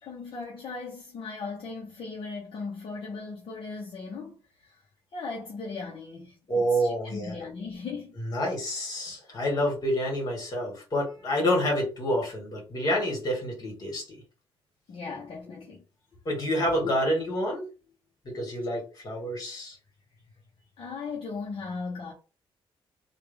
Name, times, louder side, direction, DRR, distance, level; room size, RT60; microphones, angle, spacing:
voice 1, 0.0-4.8 5.1-8.2 9.6-9.7 14.9-15.8 20.8-22.1, left 4 dB, 60° left, 0.9 m, -38 dB
voice 2, 6.5-7.4 8.2-14.2 16.3-17.7 18.3-19.8, equal, 40° left, 1.9 m, -28 dB
3.2 x 2.4 x 3.4 m
cardioid pair, 130°, 10 cm